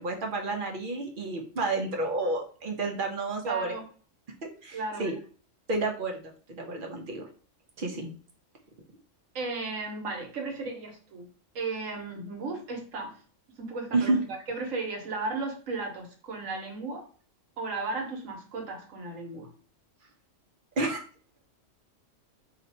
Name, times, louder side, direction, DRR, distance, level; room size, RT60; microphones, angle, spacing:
voice 1, 0.0-3.7 4.6-5.1 5.7-7.3 7.8-8.1 13.9-14.2 20.8-21.0, right 2 dB, 50° right, 0.7 m, -30 dB
voice 2, 3.4-3.8 4.7-5.1 9.3-11.3 11.5-13.2 13.6-17.0 17.6-19.5, right 3 dB, 90° right, 1.3 m, -35 dB
2.7 x 2.5 x 4.1 m
omnidirectional pair, 1.3 m